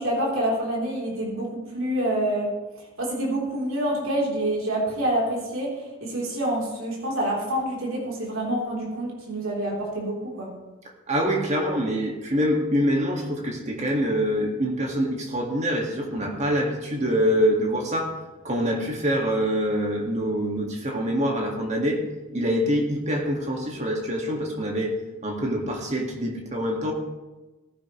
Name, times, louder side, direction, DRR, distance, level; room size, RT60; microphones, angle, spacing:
voice 1, 0.0-2.5 3.0-5.7 6.0-10.5, right 1 dB, 70° right, -3 dB, 3.7 m, -27 dB
voice 2, 11.1-18.2 18.4-22.0 22.3-25.0 25.2-26.9, equal, 30° right, 1 dB, 2.0 m, -25 dB
17.5 x 10.0 x 3.2 m, 1.2 s
head